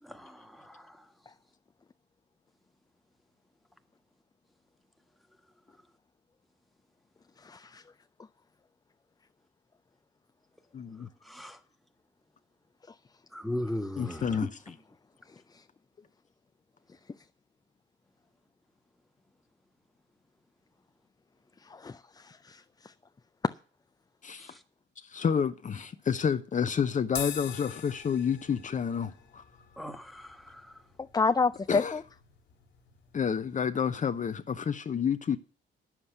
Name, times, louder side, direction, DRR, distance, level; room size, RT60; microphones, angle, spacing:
voice 1, 0.0-1.1 11.2-11.6 13.3-14.5 24.4-24.6 29.8-30.8, left 1 dB, ahead, 1.5 m, -38 dB
voice 2, 7.4-7.8 12.8-13.0 15.3-15.7 16.9-17.2 21.6-22.9 23.4-23.5 31.0-32.0, left 4 dB, 20° left, 0.5 m, -31 dB
voice 3, 10.7-11.1 14.0-14.8 24.2-24.5 25.0-29.4 31.7-32.0 33.1-35.4, left 7 dB, 40° left, 0.8 m, -30 dB
sound 1, 27.1-33.7, left 9 dB, 70° left, 2.1 m, -45 dB
9.8 x 7.5 x 7.9 m
cardioid pair, 90°, 20 cm